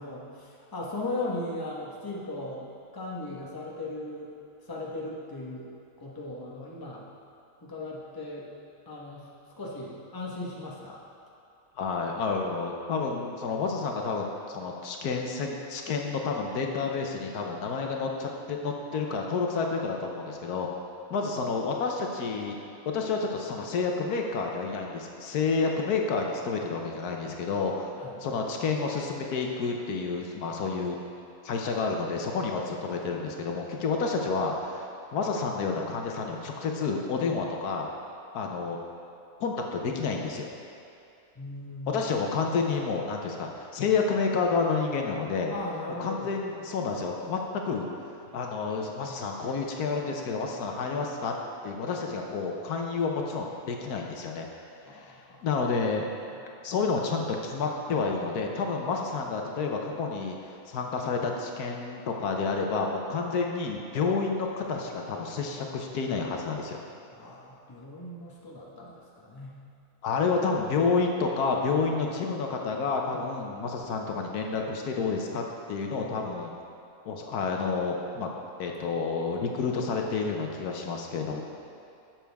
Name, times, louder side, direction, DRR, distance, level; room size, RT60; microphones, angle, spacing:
voice 1, 0.0-2.6 2.9-4.3 4.7-5.7 6.0-7.0 7.6-8.5 8.9-9.3 9.6-11.0 28.0-28.2 41.3-42.1 45.5-46.3 54.9-55.5 56.3-56.7 67.1-69.5, left 2 dB, 15° left, -4 dB, 1.1 m, -37 dB
voice 2, 11.8-20.7 21.1-22.5 22.9-27.9 28.2-31.0 31.4-34.9 35.1-37.9 38.3-38.8 39.4-40.5 41.9-45.5 46.0-47.4 47.6-47.9 48.3-51.3 51.6-54.5 54.9-56.1 56.6-66.8 70.0-75.4 75.7-76.5 77.0-78.3 78.6-81.4, left 4 dB, 80° left, 1 dB, 1.3 m, -29 dB
11.5 x 7.5 x 3.5 m, 2.6 s
omnidirectional pair, 1.6 m